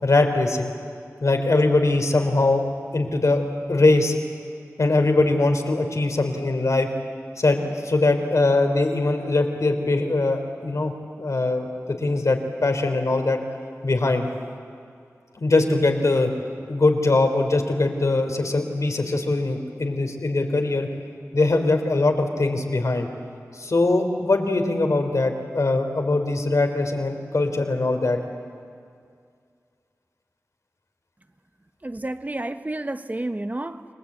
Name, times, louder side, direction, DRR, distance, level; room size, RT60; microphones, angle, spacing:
voice 1, 0.0-0.7 1.2-3.4 3.7-4.1 4.8-6.9 7.4-10.9 11.2-11.7 12.0-13.4 13.8-14.3 15.4-16.3 16.7-20.9 21.3-23.1 23.6-28.2, left 2 dB, 70° left, 4 dB, 3.3 m, -21 dB
voice 2, 31.8-33.9, right 1 dB, 30° right, 9 dB, 1.2 m, -30 dB
29.0 x 20.5 x 8.6 m, 2.2 s
wide cardioid pair, 55°, 6 cm